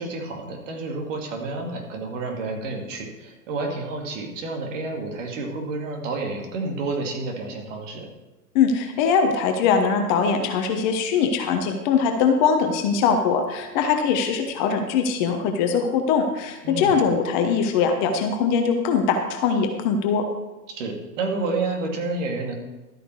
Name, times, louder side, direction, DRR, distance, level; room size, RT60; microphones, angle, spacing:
voice 1, 0.0-8.1 16.6-16.9 20.7-22.6, right 3 dB, 50° right, 2 dB, 2.6 m, -30 dB
voice 2, 8.5-20.2, left 6 dB, 30° left, 5 dB, 1.0 m, -21 dB
12.5 x 8.9 x 4.7 m, 1.1 s
hypercardioid pair, 130°, 49 cm